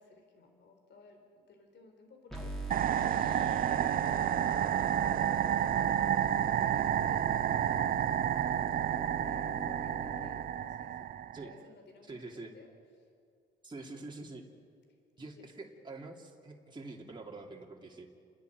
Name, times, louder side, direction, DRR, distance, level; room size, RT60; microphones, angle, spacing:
voice 1, 0.0-5.3 5.9-11.2 11.4-12.7, left 3 dB, 60° left, 3 dB, 4.1 m, -57 dB
sound 1, 2.3-10.3, right 2 dB, ahead, 3.9 m, -43 dB
sound 2, 2.7-11.5, right 10 dB, 45° right, 0.4 m, -30 dB
voice 2, 12.0-12.5 13.6-14.4 15.2-18.1, right 3 dB, 25° right, -1 dB, 2.8 m, -46 dB
30.0 x 10.5 x 9.3 m, 2.3 s
cardioid pair, 90°, 20 cm